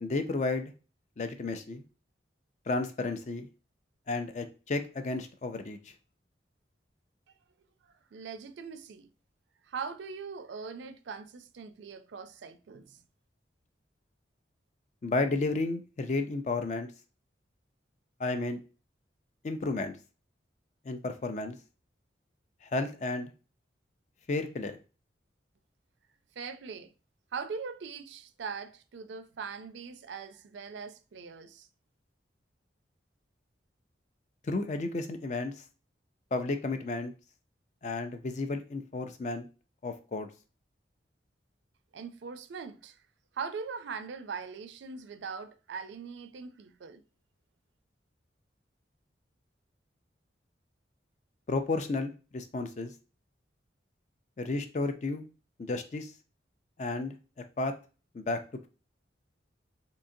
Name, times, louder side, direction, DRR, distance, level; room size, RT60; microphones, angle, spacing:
voice 1, 0.0-0.7 1.2-1.8 2.7-3.5 4.1-5.8 15.0-16.9 18.2-18.6 19.4-20.0 20.8-21.6 22.6-23.3 24.3-24.7 34.4-35.6 36.3-37.1 37.8-39.5 39.8-40.3 51.5-52.9 54.4-55.3 55.6-56.1 56.8-57.2 57.6-57.7 58.1-58.4, left 3 dB, 40° left, 0.4 m, -32 dB
voice 2, 8.1-9.1 9.7-13.0 26.4-26.9 27.3-31.7 41.9-43.0 43.3-47.0, right 5 dB, 75° right, 0.4 m, -41 dB
3.7 x 2.8 x 2.6 m
head